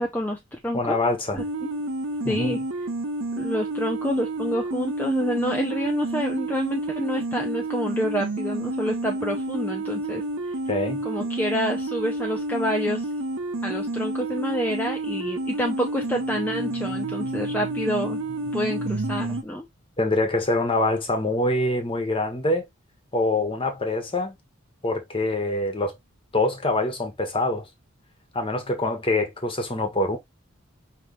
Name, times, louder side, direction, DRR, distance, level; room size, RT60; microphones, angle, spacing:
voice 1, 0.0-1.0 1.3-1.7 2.3-2.6 3.4-10.2 11.0-13.1 13.6-18.2 18.5-19.6, equal, 10° left, 0.6 m, -28 dB
voice 2, 0.7-1.4 2.2-2.6 10.7-11.0 20.0-22.6 23.1-24.3 24.8-25.9 26.3-27.7 28.3-30.2, left 2 dB, 25° left, 1.2 m, -25 dB
sound 1, 1.4-19.4, right 2 dB, 90° right, 1.0 m, -30 dB
5.5 x 3.1 x 3.1 m
head